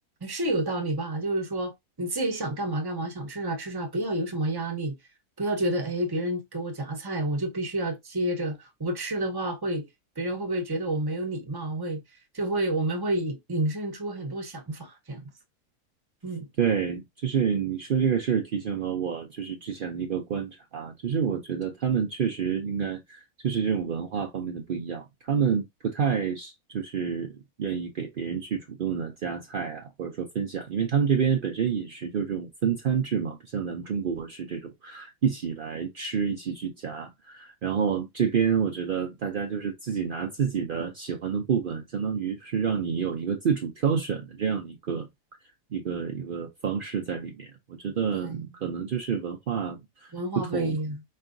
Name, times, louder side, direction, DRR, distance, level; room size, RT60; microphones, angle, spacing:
voice 1, 0.2-5.0 5.4-9.9 10.2-12.0 12.3-15.2 16.2-16.5 48.1-48.5 50.1-51.0, right 1 dB, 20° right, 0.6 m, -29 dB
voice 2, 16.6-27.3 27.6-45.1 45.7-50.8, right 7 dB, 65° right, 0.5 m, -28 dB
4.7 x 3.3 x 2.5 m
omnidirectional pair, 1.7 m